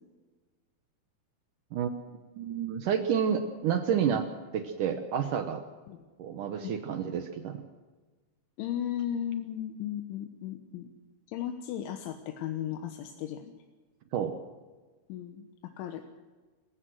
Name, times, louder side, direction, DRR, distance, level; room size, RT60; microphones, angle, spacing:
voice 1, 1.7-4.3 4.5-5.6 6.2-7.6 14.1-14.4, right 8 dB, 85° right, 7 dB, 1.8 m, -30 dB
voice 2, 8.6-10.9 11.3-13.5 15.1-15.5 15.8-16.0, left 10 dB, 85° left, 5 dB, 3.6 m, -35 dB
27.5 x 16.0 x 6.2 m, 1.3 s
omnidirectional pair, 5.4 m